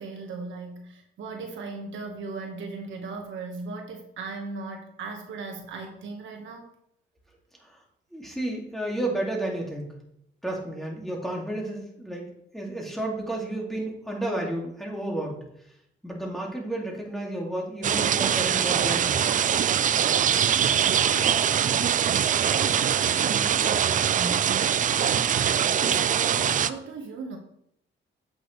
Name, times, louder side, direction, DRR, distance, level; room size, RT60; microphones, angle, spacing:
voice 1, 0.0-6.7 23.1-24.5 24.9-27.4, right 4 dB, 75° right, 2 dB, 1.4 m, -38 dB
voice 2, 8.1-9.9 10.4-12.3 12.5-15.4 16.0-19.3, right 1 dB, ahead, -1 dB, 2.3 m, -32 dB
sound 1, 17.8-26.7, right 8 dB, 40° right, 0.4 m, -23 dB
8.0 x 6.3 x 3.2 m, 0.74 s
cardioid pair, 90°, 20 cm